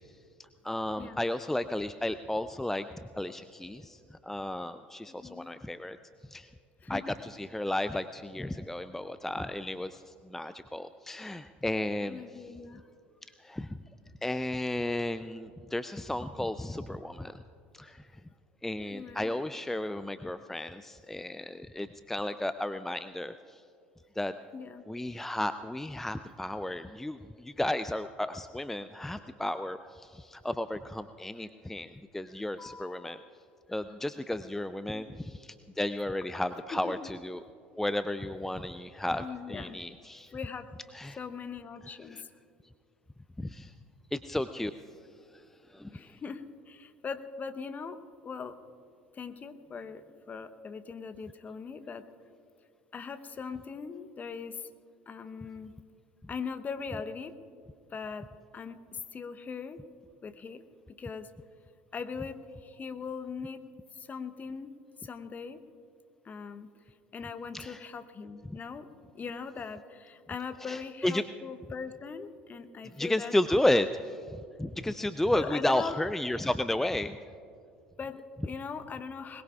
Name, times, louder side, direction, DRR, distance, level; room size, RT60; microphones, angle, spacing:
voice 1, 0.6-2.9 3.2-6.0 6.3-6.5 6.9-12.5 13.4-13.8 14.2-17.4 17.7-18.1 18.6-23.6 24.2-24.3 24.9-33.2 33.7-37.4 37.8-40.3 40.9-41.2 42.1-42.2 43.4-43.7 44.1-44.7 45.3-45.4 45.7-45.9 67.5-67.8 68.5-68.6 70.7-71.2 72.9-77.2, left 1 dB, 5° left, 12 dB, 0.4 m, -33 dB
voice 2, 5.2-5.5 6.8-7.0 12.1-12.8 18.9-19.3 24.5-24.8 32.6-33.3 34.9-35.0 36.7-37.0 39.2-39.8 40.3-40.7 41.2-42.3 45.9-48.6 49.1-52.0 52.9-54.7 55.1-55.7 56.3-57.3 57.9-58.3 58.5-59.8 60.2-60.6 61.0-61.3 61.9-63.6 63.9-65.6 66.2-66.7 67.1-68.9 69.1-73.3 75.3-76.0 78.0-79.4, left 5 dB, 30° left, 10 dB, 0.9 m, -40 dB
21.5 x 21.0 x 2.4 m, 2.4 s
figure-of-eight pair, 65°, 6 cm